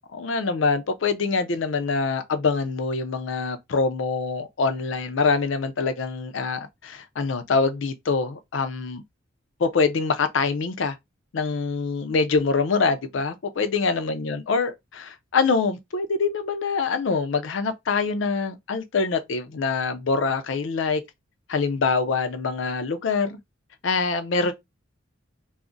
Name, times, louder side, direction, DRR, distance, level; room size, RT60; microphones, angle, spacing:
voice 1, 0.1-9.0 9.6-11.0 11.3-21.0 21.5-23.4 23.8-24.5, left 4 dB, 70° left, 0.5 m, -25 dB
2.4 x 2.0 x 3.7 m
head